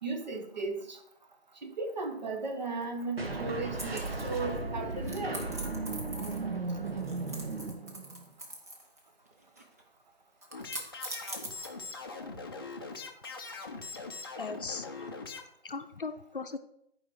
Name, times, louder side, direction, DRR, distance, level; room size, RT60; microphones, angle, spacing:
voice 1, 0.0-1.0 1.6-5.4 6.7-6.8, right 3 dB, 40° right, 4 dB, 1.4 m, -36 dB
sound 1, 3.2-8.3, right 3 dB, 65° right, 1.4 m, -36 dB
sound 2, 3.8-4.6 5.0-6.6 6.8-9.0 9.2-9.8 10.4-12.1, right 1 dB, 15° right, 0.7 m, -43 dB
sound 3, 10.5-15.4, left 4 dB, 20° left, 0.6 m, -42 dB
voice 2, 14.4-15.1 15.6-16.6, left 4 dB, 55° left, 9 dB, 0.8 m, -38 dB
10.5 x 4.9 x 4.7 m, 0.73 s
figure-of-eight pair, 150°, 32 cm